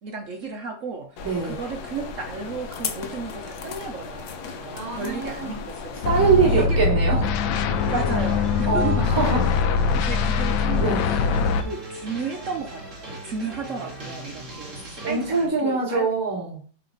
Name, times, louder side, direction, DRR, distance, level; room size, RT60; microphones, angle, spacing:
voice 1, 0.0-6.0 6.4-6.8 7.9-9.0 9.7-10.9 11.6-12.8 13.2-16.1, right 5 dB, 65° right, 4 dB, 0.7 m, -33 dB
sound 1, 1.2-6.7, left 5 dB, 60° left, 1.2 m, -36 dB
voice 2, 1.2-1.6 4.7-5.6 6.0-7.3 8.7-9.4 9.7-9.8 10.8-11.0 15.0-16.6, right 5 dB, 10° right, -7 dB, 2.6 m, -23 dB
sound 2, 6.0-11.6, left 5 dB, 80° left, 1.4 m, -22 dB
sound 3, 7.7-15.5, right 1 dB, 40° right, 2.2 m, -39 dB
9.3 x 3.3 x 3.9 m, 0.43 s
omnidirectional pair, 2.2 m